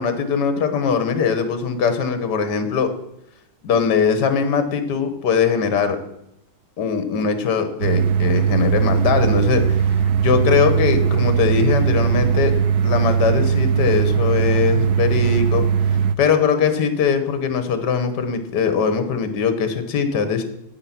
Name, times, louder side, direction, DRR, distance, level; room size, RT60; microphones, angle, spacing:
voice 1, 0.0-2.9 3.6-6.0 6.8-9.6 10.2-12.5 12.8-15.6 16.2-20.4, left 6 dB, 55° left, 8 dB, 1.8 m, -21 dB
sound 1, 7.8-16.1, right 7 dB, 90° right, 0.8 m, -19 dB
12.0 x 8.9 x 6.1 m, 0.81 s
omnidirectional pair, 2.4 m